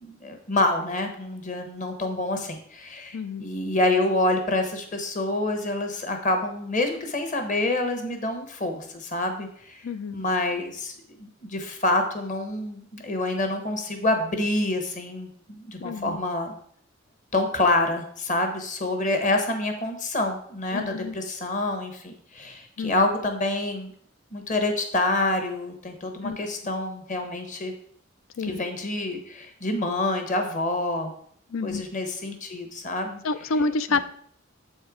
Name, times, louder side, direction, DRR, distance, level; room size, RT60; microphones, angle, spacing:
voice 1, 0.0-9.8 10.1-16.5 17.3-23.9 24.3-27.7 28.4-31.1 31.6-33.2 33.9-34.0, left 2 dB, 40° left, 5 dB, 1.2 m, -27 dB
voice 2, 3.1-3.5 9.8-10.2 15.8-16.2 20.7-21.1 22.8-23.1 26.2-26.4 28.4-28.6 31.5-31.9 33.2-34.0, left 3 dB, 90° left, 14 dB, 0.5 m, -28 dB
7.8 x 4.4 x 4.9 m, 0.62 s
head